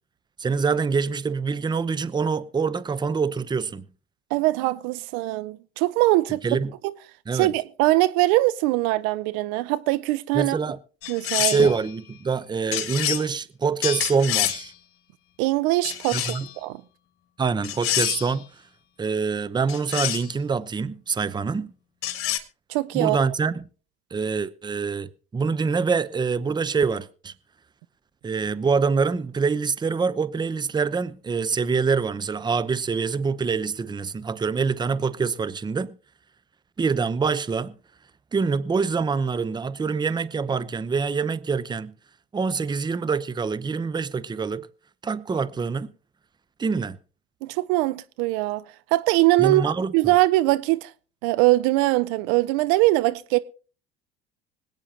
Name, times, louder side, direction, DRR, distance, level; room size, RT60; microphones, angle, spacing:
voice 1, 0.4-3.8 6.4-6.7 7.3-7.5 10.3-10.8 11.4-14.7 16.1-16.5 17.4-18.4 19.0-21.7 22.9-23.7 24.1-27.3 28.2-36.0 36.8-37.7 38.3-41.9 42.3-44.7 45.0-45.9 46.6-47.0 49.4-50.1, right 5 dB, 15° right, 0.7 m, -25 dB
voice 2, 4.3-6.4 7.3-10.6 11.1-11.7 15.4-16.8 22.7-23.2 47.4-48.6 48.9-49.6 49.9-50.9 51.2-53.4, right 18 dB, 55° right, 0.7 m, -22 dB
sound 1, 11.0-11.8 12.7-13.3 13.8-14.7 15.8-16.5 17.6-18.3 19.7-20.3 22.0-22.4, left 12 dB, 45° left, 1.7 m, -27 dB
25.5 x 9.0 x 2.9 m
figure-of-eight pair, 65°, 32 cm